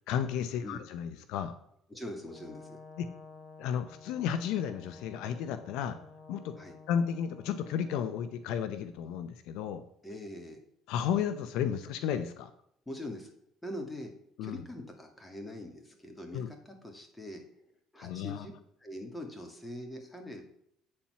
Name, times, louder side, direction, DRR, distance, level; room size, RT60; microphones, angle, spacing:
voice 1, 0.1-1.6 3.0-3.1 3.6-6.0 6.3-6.5 6.9-9.8 10.9-12.5 14.4-14.6 16.3-16.5 18.0-18.5, left 8 dB, 75° left, 11 dB, 0.7 m, -33 dB
voice 2, 1.9-2.8 6.6-6.8 10.0-10.6 12.9-13.3 13.6-14.1 14.4-17.4 17.9-18.5 18.8-20.4, left 1 dB, 10° left, 4 dB, 2.2 m, -42 dB
Brass instrument, 2.3-8.4, left 4 dB, 50° left, 1.4 m, -52 dB
8.6 x 4.4 x 5.7 m, 0.71 s
supercardioid pair, 85°, 0 cm